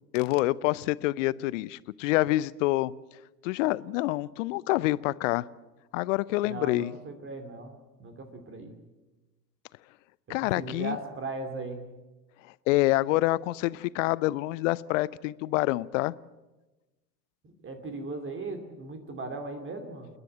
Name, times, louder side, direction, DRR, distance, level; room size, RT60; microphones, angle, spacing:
voice 1, 0.1-2.9 3.4-5.5 5.9-6.9 10.3-11.0 12.7-16.2, left 18 dB, 50° left, 21 dB, 0.7 m, -27 dB
voice 2, 6.4-8.7 10.3-11.9 17.4-20.1, right 3 dB, 25° right, 7 dB, 2.7 m, -38 dB
29.0 x 10.5 x 8.9 m, 1.1 s
figure-of-eight pair, 80°, 50 cm